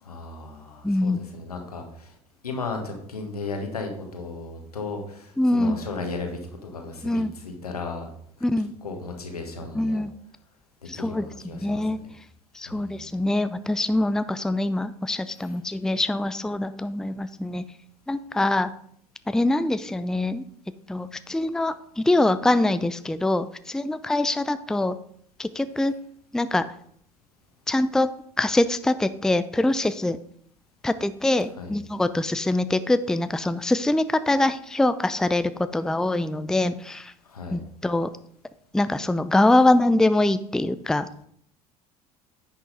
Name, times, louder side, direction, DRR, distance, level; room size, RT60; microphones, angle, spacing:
voice 1, 0.0-2.1 2.4-8.1 8.8-10.0 10.9-12.1 12.7-13.2 15.4-15.5 31.6-31.7 37.3-37.6, left 3 dB, 90° left, 4 dB, 1.5 m, -35 dB
voice 2, 0.8-1.2 5.4-5.8 7.0-7.3 8.4-8.7 9.7-10.1 10.9-11.2 11.6-12.0 12.5-17.6 18.1-18.7 19.3-20.4 20.9-24.9 25.4-25.9 26.3-26.7 27.7-28.1 28.4-30.2 30.8-37.1 37.5-38.1 38.7-41.1, left 2 dB, 5° left, 13 dB, 0.5 m, -24 dB
10.0 x 6.1 x 4.1 m, 0.66 s
hypercardioid pair, 65°, 19 cm